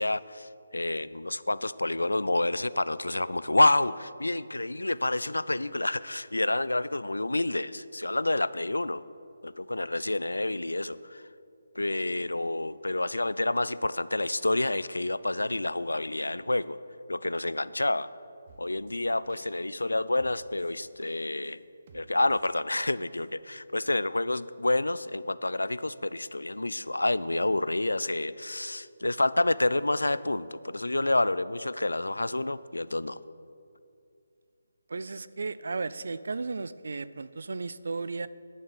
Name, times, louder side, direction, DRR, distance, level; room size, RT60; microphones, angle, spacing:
voice 1, 0.0-9.0 9.4-11.2 11.8-16.8 17.1-18.1 18.6-21.6 21.9-33.2, left 2 dB, 80° left, 0.4 m, -28 dB
sound 1, 18.5-19.8 20.1-21.5 21.9-23.2, right 3 dB, 40° right, 1.0 m, -56 dB
voice 2, 34.9-38.3, right 3 dB, 60° right, 0.4 m, -34 dB
11.0 x 6.4 x 7.0 m
figure-of-eight pair, 150°, 0 cm